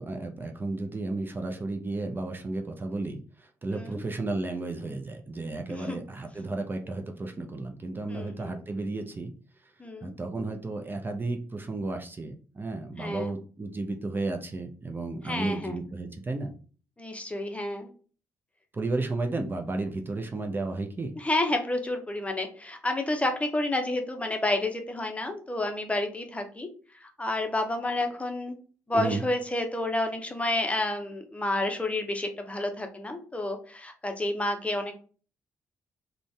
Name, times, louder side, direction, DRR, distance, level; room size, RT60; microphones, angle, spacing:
voice 1, 0.0-9.3 9.6-9.7 10.0-16.5 18.7-21.1 28.9-29.2, right 2 dB, 25° right, 4 dB, 0.6 m, -33 dB
voice 2, 8.1-8.5 9.8-10.1 13.0-13.3 15.3-15.8 17.0-17.9 21.2-26.7 27.2-28.6 28.9-34.9, left 2 dB, 15° left, 4 dB, 0.8 m, -30 dB
3.8 x 2.3 x 3.3 m, 0.40 s
figure-of-eight pair, 40°, 8 cm